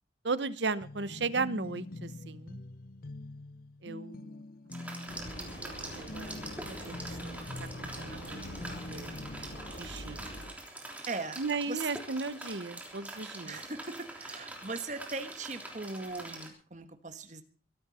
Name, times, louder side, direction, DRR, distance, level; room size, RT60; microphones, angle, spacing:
voice 1, 0.2-2.6 3.8-4.4 4.9-6.9 7.2-8.4 8.7-9.1 9.7-10.2 11.4-13.6, right 4 dB, 80° right, 16 dB, 1.0 m, -36 dB
sound 1, 0.8-9.7, left 2 dB, 50° left, 0.6 m, -45 dB
sound 2, 4.7-16.5, right 2 dB, 10° right, 3.3 m, -45 dB
Vehicle, 5.1-10.5, equal, 80° left, 7.4 m, -44 dB
voice 2, 11.1-11.4 11.7-11.9 13.4-17.4, right 3 dB, 40° right, 8 dB, 1.7 m, -39 dB
23.0 x 12.0 x 4.3 m, 0.38 s
head